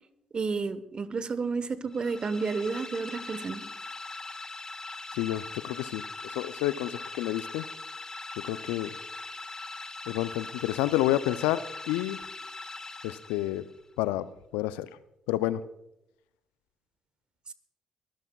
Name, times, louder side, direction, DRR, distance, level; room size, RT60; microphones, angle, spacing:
voice 1, 0.3-3.6, right 4 dB, 40° right, 14 dB, 1.0 m, -31 dB
sound 1, 1.9-13.8, left 3 dB, 25° left, 1.0 m, -41 dB
voice 2, 5.2-7.6 8.5-8.9 10.1-12.2 13.0-13.6 14.0-14.3 14.5-14.9 15.3-15.6, left 15 dB, 80° left, 16 dB, 0.4 m, -29 dB
23.0 x 13.0 x 2.3 m, 0.85 s
hypercardioid pair, 50°, 2 cm